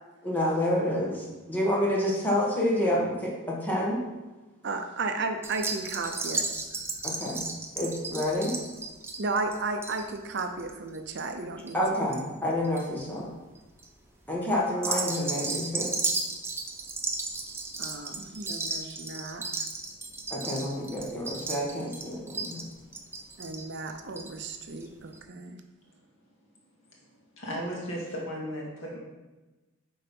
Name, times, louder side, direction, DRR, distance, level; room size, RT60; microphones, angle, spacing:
voice 1, 0.2-4.0 7.0-7.5 7.7-8.5 11.7-13.3 14.3-15.9 20.3-22.7, left 1 dB, 10° left, -5 dB, 1.6 m, -28 dB
voice 2, 4.6-6.4 9.2-11.8 17.8-19.5 23.4-25.6, right 3 dB, 55° right, 6 dB, 0.7 m, -34 dB
sound 1, 5.4-12.2 12.5-13.0 13.6-13.9 14.7-24.5 24.8-24.9 25.1-25.2, right 3 dB, 10° right, 0.6 m, -34 dB
voice 3, 27.4-29.0, equal, 65° left, -3 dB, 2.2 m, -35 dB
8.8 x 3.9 x 5.4 m, 1.1 s
head